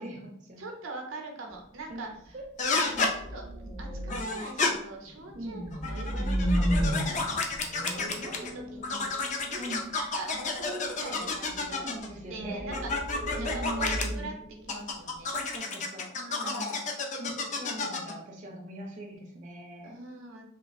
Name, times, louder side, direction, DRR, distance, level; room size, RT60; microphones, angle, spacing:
voice 1, 0.0-0.6 1.9-2.0 2.3-2.5 2.9-3.2 5.3-5.6 6.9-7.7 9.6-9.9 11.7-12.8 13.3-14.3 15.3-16.1 16.4-19.9, right 1 dB, 35° right, -1 dB, 0.4 m, -41 dB
voice 2, 0.6-2.4 2.7-7.4 7.9-9.2 9.4-11.9 12.3-14.3 14.6-15.3 16.1-16.8 19.8-20.4, right 2 dB, 80° right, 2 dB, 0.6 m, -42 dB
sound 1, 1.5-1.7 2.0-2.2 2.9-4.4 5.0-9.9 11.4-11.7 12.1-15.1, equal, 65° left, 1.4 m, -33 dB
sound 2, 2.6-3.1 4.1-4.7 5.7-8.5 8.8-12.1 12.7-14.1 14.7-18.1, left 3 dB, 35° left, 0.3 m, -31 dB
3.1 x 2.3 x 2.5 m, 0.71 s
head